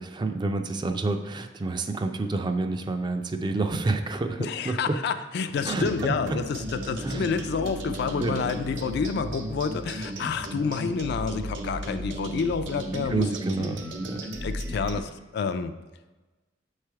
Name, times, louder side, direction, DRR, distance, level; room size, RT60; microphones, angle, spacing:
voice 1, 0.0-5.0 5.6-6.4 7.0-7.2 8.2-8.4 12.9-14.3, right 3 dB, 25° right, 6 dB, 0.4 m, -29 dB
voice 2, 4.4-13.3 13.6-13.7 14.4-15.7, left 5 dB, 60° left, 10 dB, 0.3 m, -29 dB
sound 1, 5.5-15.0, right 1 dB, 85° right, 0.7 m, -35 dB
6.6 x 3.3 x 4.6 m, 1.2 s
head